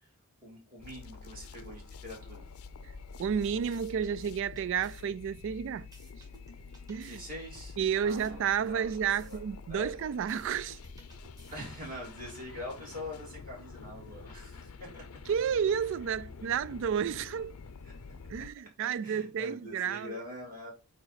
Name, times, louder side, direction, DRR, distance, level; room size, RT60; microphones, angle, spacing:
voice 1, 0.4-2.4 7.0-7.8 8.0-8.9 9.2-9.4 9.7-10.0 11.5-15.2 17.8-18.2 18.8-20.7, left 1 dB, 40° right, 3.0 m, -44 dB
sound 1, 0.8-18.5, left 4 dB, 85° left, 0.6 m, -48 dB
sound 2, 3.2-4.1 4.5-7.2 7.5-9.4 9.7-11.9, equal, 15° right, 1.6 m, -57 dB
voice 2, 3.2-5.9 6.9-7.2 7.8-10.8 15.3-17.6 18.3-20.2, right 7 dB, 60° right, 0.3 m, -31 dB
8.7 x 3.0 x 4.0 m
head